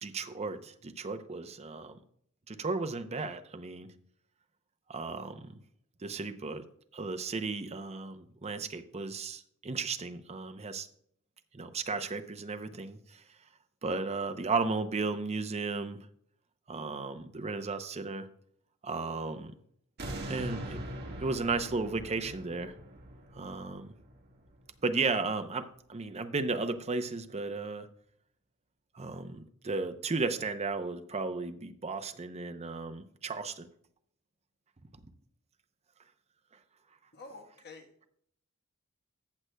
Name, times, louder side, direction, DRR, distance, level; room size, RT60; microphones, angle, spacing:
voice 1, 0.0-2.0 2.5-3.9 4.9-5.6 6.0-6.6 6.9-10.9 11.5-13.2 13.8-16.0 16.7-18.3 18.8-19.5 20.3-20.8 21.2-22.7 23.3-23.9 24.8-27.9 28.9-33.7, right 3 dB, 30° right, 7 dB, 0.6 m, -34 dB
sound 1, 20.0-25.1 25.6-25.7, right 1 dB, 50° right, 1.5 m, -42 dB
voice 2, 37.1-38.1, left 3 dB, 50° left, 4 dB, 1.3 m, -49 dB
14.5 x 7.7 x 2.2 m, 0.65 s
head